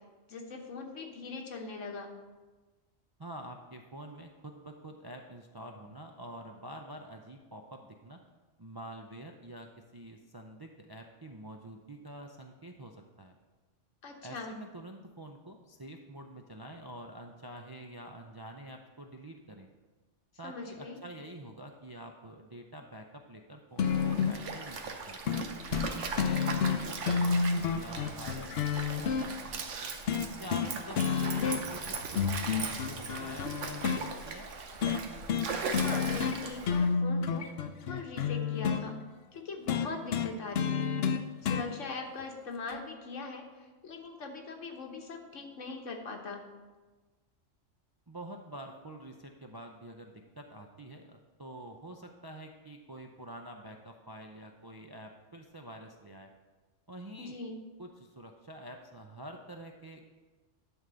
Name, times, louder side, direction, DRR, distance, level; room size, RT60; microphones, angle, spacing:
voice 1, 0.3-2.1 14.0-14.5 20.4-21.0 30.6-30.7 31.0-31.2 35.7-37.5 37.8-39.0 39.3-41.0 41.4-46.4 57.2-57.6, left 4 dB, 80° left, 3 dB, 1.5 m, -41 dB
voice 2, 3.2-8.2 8.6-13.3 14.2-19.7 20.4-25.3 25.9-29.6 30.4-34.5 48.1-56.3 56.9-57.4 57.8-60.0, right 1 dB, 35° right, 3 dB, 0.3 m, -47 dB
sound 1, 23.8-24.4 25.3-25.4 25.7-25.9 26.2-29.3 30.1-30.7 31.0-31.8 32.2-34.0 34.8-35.0 35.3-35.5 35.7-36.4 36.6-38.8 39.7-41.7 42.7-42.8, left 6 dB, 60° left, 0.8 m, -29 dB
Stream, 23.8-36.9, right 4 dB, 75° right, 1.2 m, -39 dB
11.0 x 3.8 x 6.8 m, 1.3 s
omnidirectional pair, 1.3 m